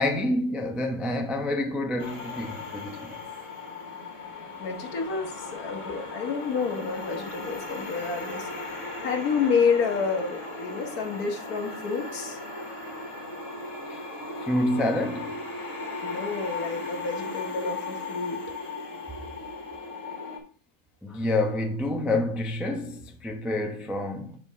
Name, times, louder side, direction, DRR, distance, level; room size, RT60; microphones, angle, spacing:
voice 1, 0.0-3.1 13.9-14.0 14.4-15.3 21.0-24.4, left 1 dB, ahead, 0.4 m, -28 dB
sound 1, 2.0-20.4, left 3 dB, 50° left, 2.0 m, -37 dB
voice 2, 4.6-12.4 16.0-18.4, left 5 dB, 65° left, 1.5 m, -29 dB
7.5 x 5.1 x 3.6 m
omnidirectional pair, 1.8 m